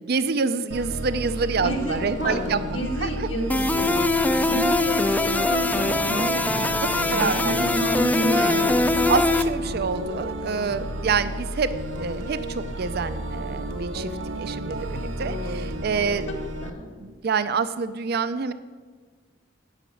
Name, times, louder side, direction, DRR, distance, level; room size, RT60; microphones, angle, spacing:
voice 1, 0.1-3.3 4.1-4.2 6.8-7.8 8.3-8.8 9.1-11.7 12.0-14.1 14.4-16.2 17.0-18.5, right 5 dB, 55° right, 13 dB, 0.5 m, -27 dB
sound 1, 0.7-16.7, right 1 dB, 80° right, 0.9 m, -32 dB
voice 2, 1.6-4.0 4.4-9.1 16.6-16.9, right 1 dB, 70° left, 0 dB, 2.1 m, -30 dB
sound 2, 3.5-9.4, left 2 dB, 10° left, 0.4 m, -22 dB
9.9 x 5.9 x 8.4 m, 1.5 s
head